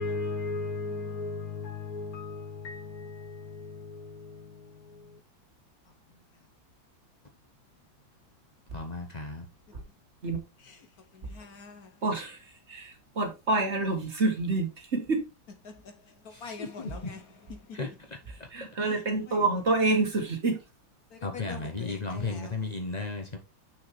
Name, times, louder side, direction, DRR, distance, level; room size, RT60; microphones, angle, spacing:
voice 1, 0.0-5.2 10.6-10.9 11.1-11.9 15.6-16.1 16.4-17.8 18.8-19.5 21.1-22.8, left 3 dB, 55° left, 1.2 m, -39 dB
voice 2, 8.7-9.4 16.3-16.9 17.7-17.9 18.6-18.7 21.2-23.4, left 3 dB, 75° left, 0.3 m, -34 dB
voice 3, 12.0-12.4 12.7-12.9 13.2-14.7 14.9-15.2 18.5-20.5, right 3 dB, 40° right, 1.5 m, -27 dB
7.0 x 6.2 x 3.2 m
omnidirectional pair, 2.2 m